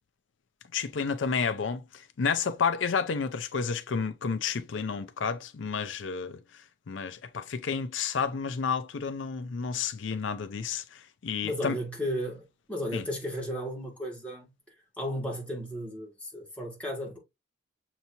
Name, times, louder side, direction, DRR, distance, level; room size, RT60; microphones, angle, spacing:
voice 1, 0.7-6.4 6.9-11.8 12.9-13.0, left 5 dB, 70° left, 0.5 m, -31 dB
voice 2, 11.4-12.4 12.7-14.5 15.0-17.2, equal, 5° left, 2.0 m, -34 dB
6.7 x 2.9 x 2.7 m
head